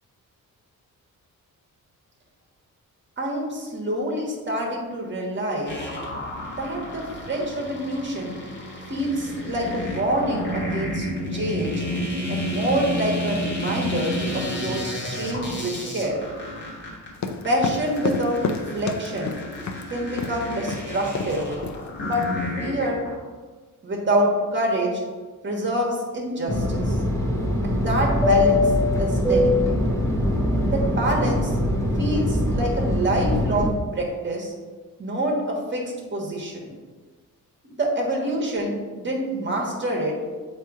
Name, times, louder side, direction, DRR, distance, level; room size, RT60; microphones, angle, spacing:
voice 1, 3.2-5.8 6.6-8.4 8.9-11.0 11.3-11.8 12.3-16.2 17.4-19.4 19.9-21.5 22.0-22.2 22.6-23.0 23.8-25.0 25.4-26.9 27.6-28.7 29.0-29.5 30.7-31.5 32.0-34.5 35.0-35.8 36.1-36.7 37.6-40.1, right 1 dB, 35° right, -1 dB, 1.3 m, -26 dB
sound 1, 5.7-23.1, left 1 dB, 35° left, 1.5 m, -31 dB
sound 2, 17.1-19.8 20.2-20.4 20.7-20.9 21.1-21.4 21.6-22.2, left 4 dB, 55° left, 0.6 m, -29 dB
Fixed-wing aircraft airplane, 26.5-33.7, left 1 dB, 10° left, 0.8 m, -22 dB
7.6 x 2.9 x 4.7 m, 1.4 s
wide cardioid pair, 155°, 33 cm